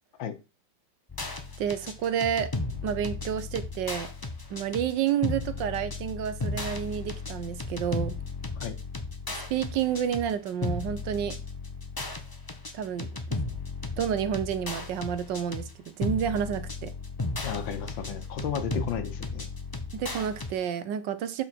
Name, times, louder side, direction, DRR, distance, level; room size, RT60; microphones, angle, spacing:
sound 1, 1.1-20.5, left 3 dB, 25° left, 0.4 m, -35 dB
voice 1, 1.6-2.5 2.8-4.1 4.5-8.2 9.5-11.3 12.7-13.4 14.0-16.9 19.9-21.4, right 9 dB, 70° right, 12 dB, 1.3 m, -30 dB
voice 2, 17.4-19.5, left 7 dB, 75° left, 9 dB, 1.7 m, -33 dB
7.2 x 5.5 x 4.4 m, 0.29 s
omnidirectional pair, 2.2 m